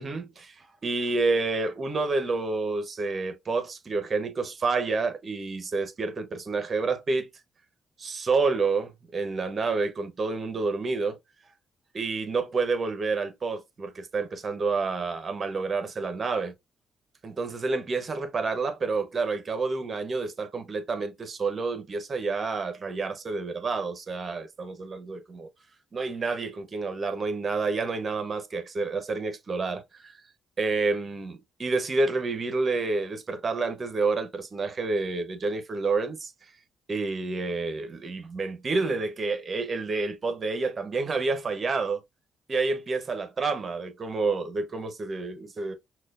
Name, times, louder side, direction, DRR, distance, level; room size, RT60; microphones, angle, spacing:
voice 1, 0.0-7.3 8.0-11.2 11.9-16.5 17.2-25.5 25.9-30.1 30.6-36.3 36.9-42.0 42.5-45.7, right 3 dB, 40° right, 0.9 m, -29 dB
6.0 x 2.3 x 2.5 m
cardioid pair, 90°, 0 cm